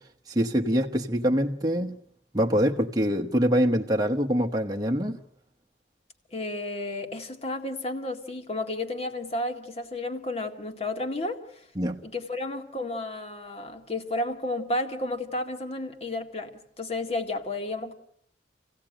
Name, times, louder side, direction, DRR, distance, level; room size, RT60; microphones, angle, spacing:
voice 1, 0.3-2.0 2.3-5.2 11.8-12.0, equal, 20° right, 1.1 m, -24 dB
voice 2, 6.3-11.6 12.0-17.9, left 2 dB, 35° left, 2.0 m, -32 dB
27.0 x 16.5 x 9.0 m
head